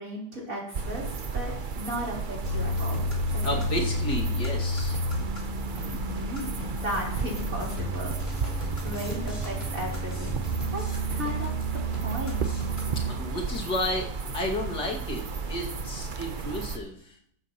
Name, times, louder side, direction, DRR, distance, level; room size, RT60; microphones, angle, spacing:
voice 1, 0.0-3.0 3.3-3.6 5.8-6.5 6.8-10.4 10.7-11.5 11.9-12.6, equal, 45° right, -3 dB, 4.1 m, -36 dB
sound 1, 0.7-16.8, right 4 dB, 60° right, 0.5 m, -34 dB
sound 2, 2.4-13.1, equal, 30° left, 3.2 m, -31 dB
voice 2, 3.4-5.0 12.9-14.1 14.3-17.2, left 1 dB, 65° left, -1 dB, 2.7 m, -32 dB
14.5 x 12.0 x 3.0 m, 0.65 s
omnidirectional pair, 2.0 m